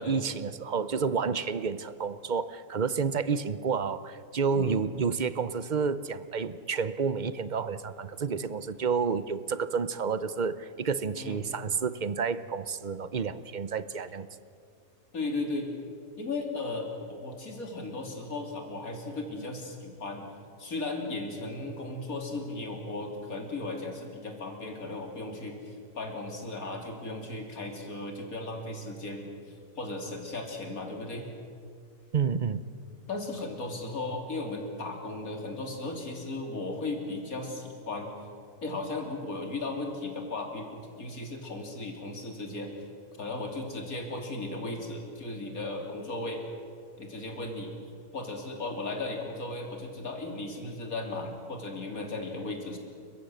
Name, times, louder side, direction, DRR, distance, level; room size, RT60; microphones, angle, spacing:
voice 1, 0.0-14.3 32.1-32.6, right 5 dB, 45° right, 14 dB, 0.7 m, -30 dB
voice 2, 15.1-15.7 16.2-20.3 20.6-29.3 29.8-31.2 33.1-38.1 38.6-42.7 43.2-46.4 47.0-47.8 48.1-52.8, left 2 dB, 75° left, 2 dB, 3.6 m, -36 dB
30.0 x 15.0 x 7.7 m, 2.3 s
omnidirectional pair, 1.5 m